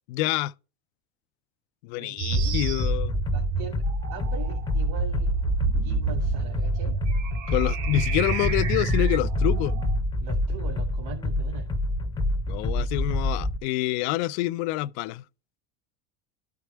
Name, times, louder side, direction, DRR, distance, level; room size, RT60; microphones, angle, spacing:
voice 1, 0.1-0.5 1.8-3.2 7.5-9.7 12.5-15.2, left 17 dB, 70° left, 0.5 m, -27 dB
voice 2, 2.0-2.7 3.3-5.3 5.7-7.0 10.2-11.7, right 4 dB, 75° right, 2.3 m, -40 dB
sound 1, 2.2-10.0, right 7 dB, 50° right, 1.1 m, -30 dB
sound 2, 2.3-13.6, left 1 dB, 15° left, 0.6 m, -27 dB
12.5 x 4.8 x 3.3 m
cardioid pair, 150°, 35 cm